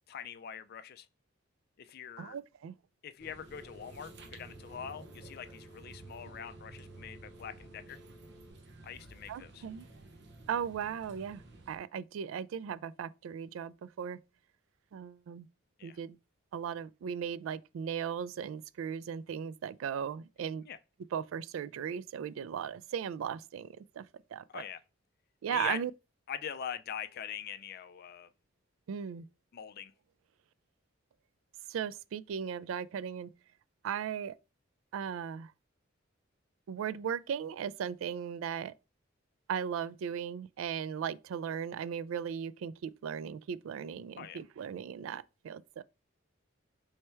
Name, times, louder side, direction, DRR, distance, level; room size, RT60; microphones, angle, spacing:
voice 1, 0.1-1.1 1.8-2.4 3.0-8.0 8.8-9.7 15.8-16.0 20.6-20.8 24.5-24.8 25.5-25.8 26.3-28.3 29.5-29.9 44.2-44.4, left 8 dB, 50° left, 0.4 m, -43 dB
voice 2, 2.2-2.7 9.3-9.9 10.5-11.4 11.7-14.2 14.9-15.5 15.8-16.2 16.5-20.6 21.1-23.7 24.0-24.1 24.3-24.6 25.4-25.9 28.9-29.3 31.7-33.3 33.8-34.4 34.9-35.5 36.7-38.7 39.5-45.8, right 8 dB, 85° right, 0.3 m, -37 dB
sound 1, 3.2-11.8, right 2 dB, 60° right, 0.8 m, -52 dB
Telephone, 3.5-8.5, right 1 dB, 5° left, 0.8 m, -57 dB
3.3 x 3.2 x 4.4 m
head